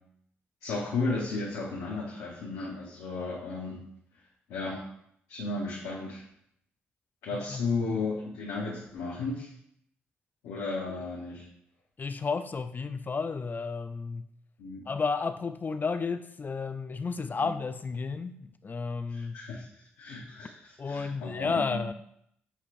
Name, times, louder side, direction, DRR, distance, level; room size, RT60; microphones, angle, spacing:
voice 1, 0.6-3.8 4.5-4.8 5.3-6.2 7.2-9.5 10.4-11.4 14.6-14.8 17.4-17.5 19.1-21.8, left 3 dB, 80° left, -4 dB, 0.9 m, -34 dB
voice 2, 7.3-7.6 12.0-14.3 14.9-19.4 20.8-21.9, left 4 dB, 35° left, 11 dB, 0.3 m, -32 dB
6.9 x 3.0 x 2.6 m, 0.71 s
hypercardioid pair, 45°, 5 cm